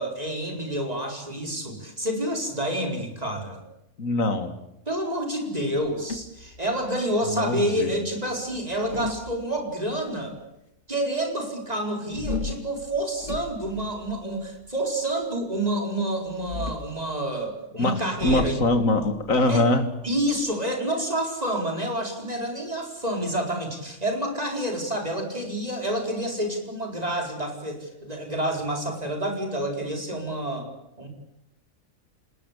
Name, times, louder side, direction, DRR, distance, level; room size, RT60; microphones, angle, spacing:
voice 1, 0.0-3.6 4.9-10.4 10.9-18.6 19.5-19.6 20.0-30.7 31.0-31.1, right 1 dB, 25° right, 2 dB, 5.0 m, -28 dB
voice 2, 4.0-4.6 7.2-8.0 17.8-19.9, left 2 dB, 65° left, 9 dB, 2.7 m, -23 dB
sound 1, 5.8-7.2 8.5-9.9 12.1-14.7 16.3-17.0 18.2-20.5, left 3 dB, 50° left, 2.2 m, -36 dB
28.0 x 20.5 x 8.4 m, 0.85 s
omnidirectional pair, 1.5 m